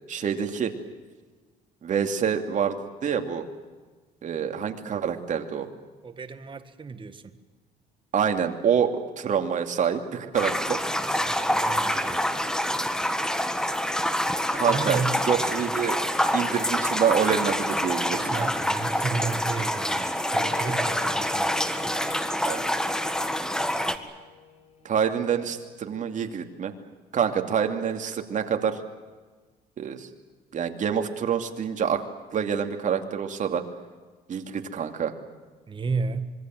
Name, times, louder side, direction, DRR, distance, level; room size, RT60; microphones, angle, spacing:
voice 1, 0.1-0.7 1.8-3.5 4.2-5.7 8.1-10.8 14.5-16.0 16.3-18.5 22.5-22.7 24.8-26.7 27.1-28.8 29.8-30.1 30.5-32.0 32.3-33.6 34.3-35.1, right 7 dB, 50° right, 6 dB, 2.7 m, -26 dB
voice 2, 6.0-7.3 11.0-12.3 14.7-15.2 15.6-15.7 18.1-21.6 35.7-36.3, right 4 dB, 30° right, 9 dB, 1.8 m, -33 dB
sound 1, 10.3-24.0, equal, 5° left, 1.8 m, -26 dB
Wind instrument woodwind instrument, 20.3-25.4, left 3 dB, 40° left, 5.1 m, -46 dB
26.0 x 22.5 x 7.8 m, 1.4 s
cardioid pair, 110°, 17 cm